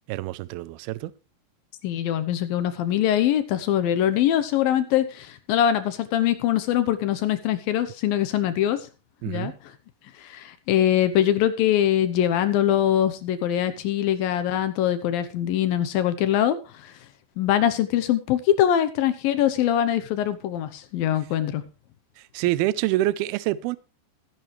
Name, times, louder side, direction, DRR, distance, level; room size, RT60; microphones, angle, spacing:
voice 1, 0.1-1.1 9.2-9.5 22.3-23.8, right 16 dB, 80° right, 2.3 m, -26 dB
voice 2, 1.8-8.9 9.3-9.5 10.2-16.9 17.4-21.6, left 11 dB, 75° left, 2.3 m, -23 dB
16.5 x 10.5 x 3.2 m
omnidirectional pair, 5.0 m